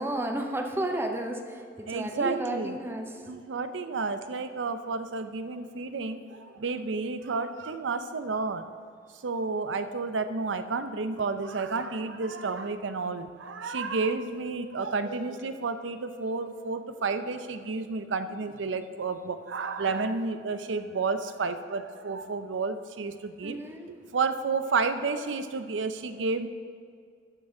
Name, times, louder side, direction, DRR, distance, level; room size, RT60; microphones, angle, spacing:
voice 1, 0.0-3.2 23.4-23.9, right 1 dB, 15° right, 4 dB, 0.6 m, -32 dB
voice 2, 1.9-2.8 3.3-8.7 9.2-23.6 23.9-26.5, right 4 dB, 90° right, 10 dB, 0.6 m, -31 dB
12.5 x 6.6 x 3.8 m, 2.2 s
head